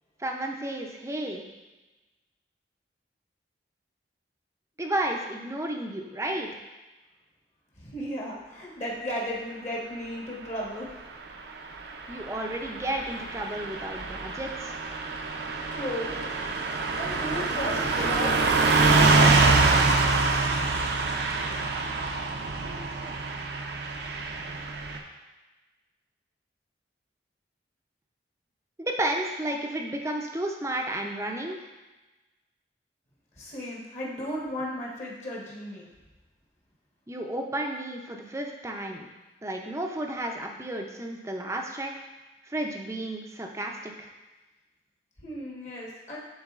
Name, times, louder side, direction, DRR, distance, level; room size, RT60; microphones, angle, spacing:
voice 1, 0.2-1.4 4.8-6.5 12.1-14.7 22.6-23.1 28.8-31.7 37.1-39.1 39.4-41.9 42.4-44.1, right 1 dB, 15° right, 2 dB, 0.5 m, -32 dB
voice 2, 7.8-10.9 15.7-16.1 16.5-18.4 33.4-35.9 45.2-46.2, equal, 40° left, -4 dB, 1.3 m, -35 dB
Car passing by / Truck, 12.0-25.0, right 3 dB, 65° right, 0.6 m, -25 dB
10.5 x 3.9 x 2.4 m, 1.2 s
head